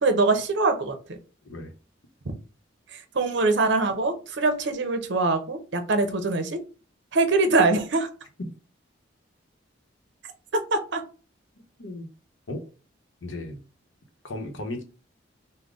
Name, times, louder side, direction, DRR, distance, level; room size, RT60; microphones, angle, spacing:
voice 1, 0.0-1.2 2.9-6.6 7.1-8.1 10.7-11.0, right 3 dB, 65° right, 0.7 m, -23 dB
voice 2, 1.4-1.7 8.4-8.5 11.8-12.1 12.5-12.6 13.2-13.6 14.2-14.8, left 1 dB, 80° left, 0.9 m, -35 dB
3.8 x 2.1 x 3.6 m
head